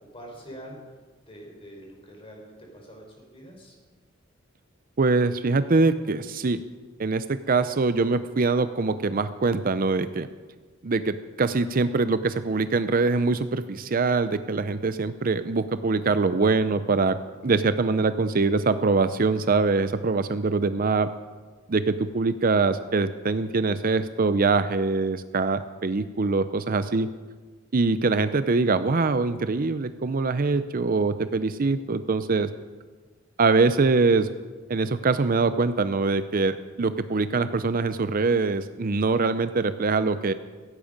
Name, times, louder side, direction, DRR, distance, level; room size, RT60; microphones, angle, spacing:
voice 1, 0.1-0.8 1.3-3.7, equal, 30° left, -1 dB, 4.9 m, -44 dB
voice 2, 5.0-6.6 7.0-10.3 10.8-17.2 17.4-21.1 21.7-27.1 27.7-32.5 33.4-34.3 34.7-40.3, right 3 dB, 45° right, 12 dB, 0.6 m, -23 dB
16.5 x 16.0 x 5.3 m, 1.4 s
head